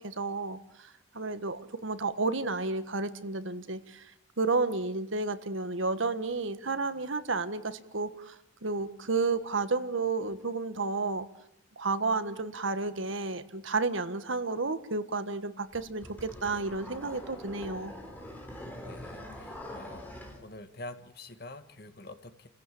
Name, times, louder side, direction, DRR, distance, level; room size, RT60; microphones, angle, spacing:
voice 1, 0.0-4.1 4.4-8.4 8.6-11.3 11.8-17.9, right 3 dB, 70° right, 11 dB, 1.4 m, -31 dB
sound 1, 15.7-20.4, left 1 dB, 10° left, 3.3 m, -44 dB
voice 2, 18.6-20.1 20.4-22.5, left 1 dB, 50° left, 9 dB, 1.7 m, -46 dB
29.5 x 16.0 x 8.5 m, 0.81 s
head